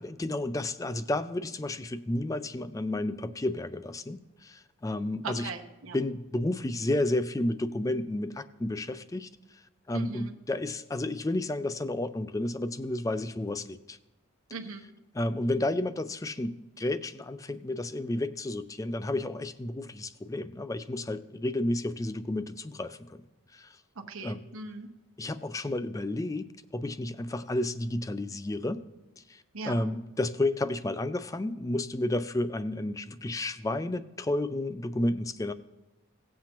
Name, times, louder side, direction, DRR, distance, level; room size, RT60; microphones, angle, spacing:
voice 1, 0.0-5.5 5.9-9.6 9.9-14.0 15.1-23.2 23.5-23.8 24.2-24.4 25.2-26.5 26.7-28.8 29.3-35.5, left 1 dB, 15° left, 13 dB, 0.3 m, -31 dB
voice 2, 5.2-6.0 9.9-10.3 14.5-14.9 24.1-24.9 29.5-29.9, right 4 dB, 85° right, 2 dB, 0.9 m, -39 dB
17.5 x 7.5 x 2.9 m, 1.1 s
head